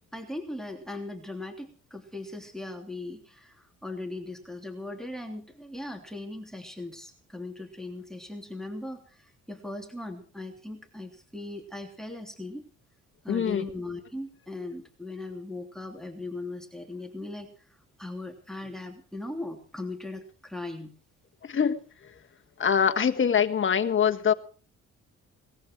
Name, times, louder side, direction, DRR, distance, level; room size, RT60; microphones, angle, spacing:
voice 1, 0.1-12.6 13.2-17.6 18.0-20.9, left 2 dB, ahead, 5 dB, 3.2 m, -39 dB
voice 2, 13.3-13.6 21.5-21.8 22.6-24.3, left 7 dB, 40° left, 7 dB, 1.5 m, -23 dB
20.0 x 14.5 x 4.7 m, 0.39 s
cardioid pair, 90°, 30 cm